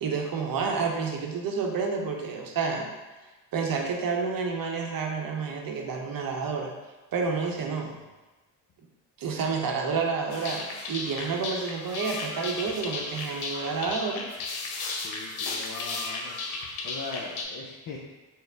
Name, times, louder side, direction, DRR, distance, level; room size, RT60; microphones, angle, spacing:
voice 1, 0.0-2.9 3.5-6.7 7.1-7.9 9.2-14.2, right 5 dB, 45° right, 1 dB, 0.7 m, -29 dB
voice 2, 7.6-8.0 15.0-16.4 16.8-18.0, left 4 dB, 45° left, -3 dB, 0.6 m, -41 dB
sound 1, 10.3-17.4, left 3 dB, 75° left, 0.7 m, -35 dB
4.1 x 2.1 x 3.4 m, 1.2 s
supercardioid pair, 70°, 48 cm